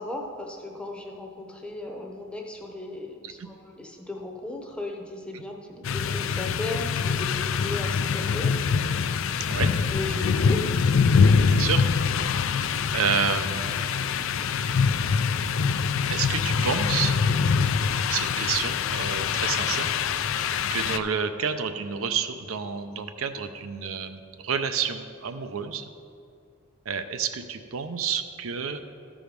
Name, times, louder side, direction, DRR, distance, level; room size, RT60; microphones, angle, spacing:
voice 1, 0.0-8.6 9.9-10.7, left 2 dB, 5° left, 1 dB, 0.7 m, -36 dB
sound 1, 5.8-21.0, left 5 dB, 65° left, 0.4 m, -24 dB
voice 2, 11.5-11.8 12.4-13.8 16.1-17.1 18.1-19.9 20.4-25.8 26.9-28.8, right 6 dB, 75° right, 8 dB, 0.5 m, -29 dB
13.0 x 4.9 x 5.2 m, 2.3 s
head